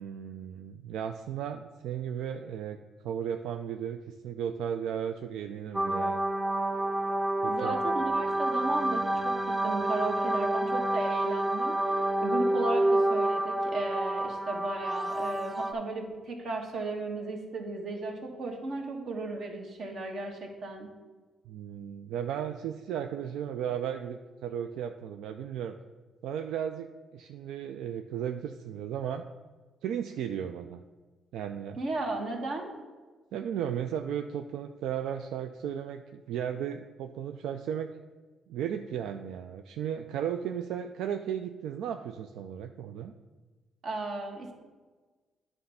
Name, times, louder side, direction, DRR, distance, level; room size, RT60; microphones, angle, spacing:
voice 1, 0.0-2.8 3.0-6.2 7.4-7.8 21.5-25.8 26.2-29.2 29.8-30.8 31.3-31.8 33.3-37.9 38.5-43.1, right 9 dB, 85° right, 6 dB, 0.3 m, -35 dB
sound 1, 5.7-15.7, right 1 dB, 15° right, 0.6 m, -28 dB
voice 2, 7.5-11.8 12.2-20.9 31.8-32.7 43.8-44.5, right 2 dB, 60° right, 2 dB, 1.4 m, -35 dB
9.4 x 3.3 x 5.5 m, 1.3 s
cardioid pair, 90°, 0 cm